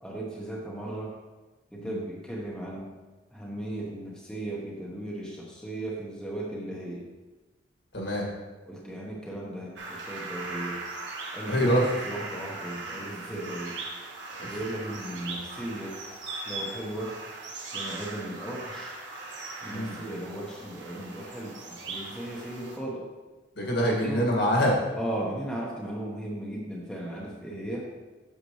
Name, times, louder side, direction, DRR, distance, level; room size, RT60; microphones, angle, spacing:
voice 1, 0.0-1.2 1.7-2.9 3.3-7.1 8.7-10.8 11.3-11.7 12.0-13.8 14.4-16.0 16.5-17.2 17.7-19.0 19.6-23.1 24.0-24.3 24.9-27.8, right 1 dB, 5° left, -4 dB, 1.0 m, -36 dB
voice 2, 7.9-8.3 11.5-11.9 14.3-14.5 19.7-19.9 23.6-24.8, equal, 65° left, -2 dB, 2.0 m, -25 dB
sound 1, 9.8-22.8, right 3 dB, 70° right, 1.5 m, -39 dB
8.3 x 6.8 x 3.1 m, 1.2 s
head